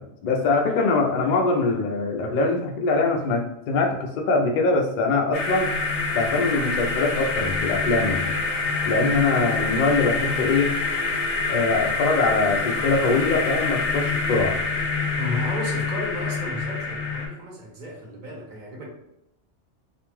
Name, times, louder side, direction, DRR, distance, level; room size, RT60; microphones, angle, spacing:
voice 1, 0.0-5.7 6.1-8.3 8.8-10.7 11.5-14.5, left 3 dB, 55° left, 1 dB, 0.5 m, -23 dB
sound 1, 5.3-17.3, left 3 dB, 75° left, 0.9 m, -26 dB
voice 2, 15.2-18.9, left 1 dB, 50° right, -2 dB, 0.8 m, -33 dB
2.5 x 2.2 x 3.1 m, 0.84 s
omnidirectional pair, 1.2 m